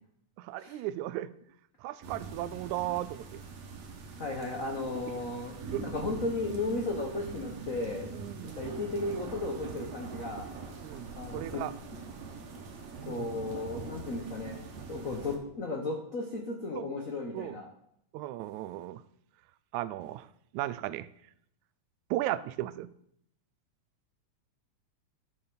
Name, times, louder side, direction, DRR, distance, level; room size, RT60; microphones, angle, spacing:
voice 1, 0.4-1.3 1.8-3.2 5.7-5.8 8.1-8.8 10.8-11.7 13.0-13.5 16.8-16.9 17.3-17.6 18.1-19.0 19.7-20.3 20.5-21.1 22.1-22.9, right 14 dB, 90° right, 16 dB, 2.0 m, -36 dB
sound 1, 2.0-15.4, right 4 dB, 65° right, 2.6 m, -43 dB
voice 2, 4.2-8.1 8.4-10.5 11.1-11.6 13.0-14.6 14.9-17.7, left 2 dB, 85° left, 2 dB, 0.7 m, -35 dB
10.5 x 6.9 x 5.3 m, 0.73 s
omnidirectional pair, 3.3 m